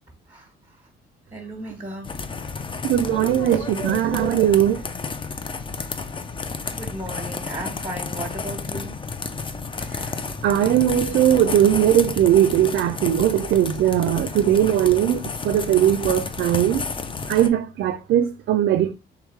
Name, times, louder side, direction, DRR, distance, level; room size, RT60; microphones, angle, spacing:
voice 1, 0.3-0.8 1.3-2.1 2.6-2.7 5.8-6.0 6.6-9.0, right 1 dB, 10° right, 1.3 m, -36 dB
sound 1, 2.0-17.5, left 4 dB, 25° left, 0.5 m, -31 dB
voice 2, 2.8-4.8 9.9-10.1 10.4-16.9 17.3-18.9, right 11 dB, 65° right, 0.4 m, -19 dB
3.5 x 3.5 x 3.1 m
cardioid pair, 90°, 20 cm